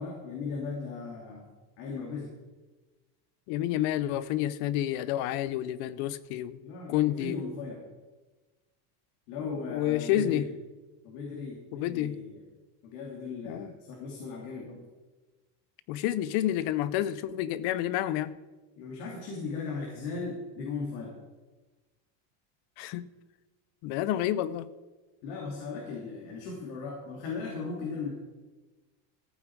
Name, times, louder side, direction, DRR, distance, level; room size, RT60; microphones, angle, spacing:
voice 1, 0.0-1.4 1.8-2.3 6.3-7.8 9.3-10.5 11.0-12.4 12.8-14.8 18.8-21.1 25.2-28.1, left 4 dB, 90° left, -1 dB, 2.8 m, -37 dB
voice 2, 3.5-6.6 6.9-7.4 9.7-10.5 11.7-12.2 13.5-13.7 15.9-18.3 22.8-23.1 23.8-24.7, left 12 dB, 50° left, 17 dB, 0.6 m, -29 dB
14.5 x 8.9 x 4.6 m, 1.2 s
cardioid pair, 170°, 47 cm